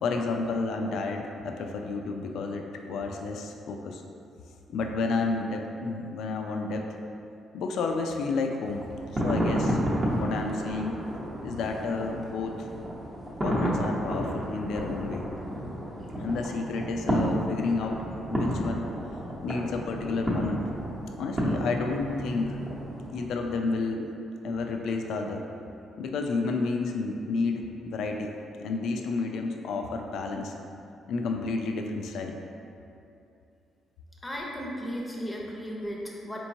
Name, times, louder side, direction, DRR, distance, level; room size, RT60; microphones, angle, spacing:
voice 1, 0.0-4.0 4.7-6.9 7.5-8.8 9.1-11.0 11.4-12.7 13.4-15.3 16.2-18.0 18.3-18.9 19.4-20.7 21.2-22.6 23.1-24.1 24.4-25.5 26.0-30.5 31.1-32.4, left 3 dB, 75° left, 3 dB, 0.3 m, -31 dB
sound 1, 8.7-23.3, equal, 25° right, 0.8 m, -31 dB
voice 2, 34.2-36.4, equal, 15° left, -2 dB, 0.6 m, -35 dB
4.3 x 3.0 x 2.6 m, 2.7 s
cardioid pair, 90°, 0 cm